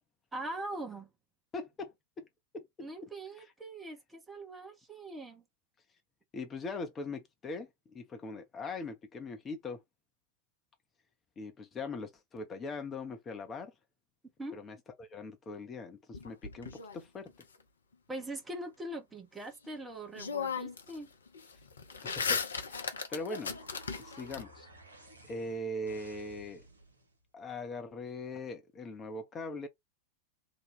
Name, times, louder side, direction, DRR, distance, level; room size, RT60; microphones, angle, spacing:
voice 1, 0.3-1.1 2.8-5.4 14.4-14.6 18.1-21.1, right 1 dB, 10° right, 0.9 m, -42 dB
voice 2, 1.5-2.3 2.5-2.6 3.4-3.5 6.3-7.7 7.9-9.8 11.4-13.7 14.5-17.3 22.0-22.4 22.7-23.6 24.0-24.7 25.2-26.6 27.3-29.7, left 2 dB, 20° left, 0.7 m, -41 dB
sound 1, 16.1-17.4 19.6-19.7 20.1-21.0 21.3-24.4, left 5 dB, 70° left, 0.6 m, -36 dB
sound 2, 22.6-27.2, right 1 dB, 80° right, 0.9 m, -55 dB
2.8 x 2.3 x 3.5 m
figure-of-eight pair, 90°, 0 cm